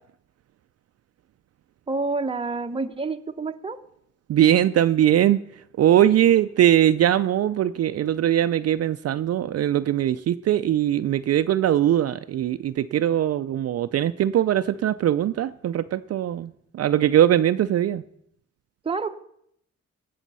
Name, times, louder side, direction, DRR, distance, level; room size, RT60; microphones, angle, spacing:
voice 1, 1.9-3.8 18.8-19.2, right 3 dB, 20° right, 7 dB, 0.8 m, -28 dB
voice 2, 4.3-5.4 5.8-18.0, right 11 dB, 55° right, 11 dB, 0.4 m, -21 dB
17.5 x 7.1 x 5.4 m, 0.73 s
cardioid pair, 110°, 29 cm